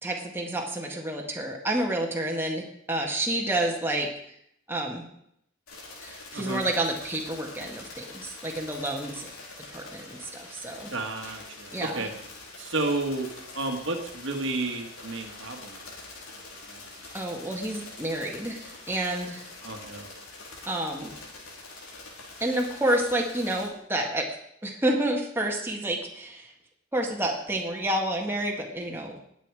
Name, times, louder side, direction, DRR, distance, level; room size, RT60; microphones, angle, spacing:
voice 1, 0.0-4.1 4.7-5.1 6.0-9.3 9.7-10.9 11.7-12.1 17.1-19.5 20.7-21.1 22.4-24.3 24.6-26.5 26.9-29.2, right 1 dB, 10° right, 0 dB, 1.7 m, -29 dB
sound 1, 5.7-23.7, left 2 dB, 85° left, 4.1 m, -45 dB
voice 2, 10.9-12.1 12.6-13.3 13.5-15.9 16.3-16.4 16.7-16.8 19.6-20.1, right 2 dB, 60° right, 3 dB, 1.8 m, -32 dB
19.5 x 8.3 x 4.8 m, 0.73 s
head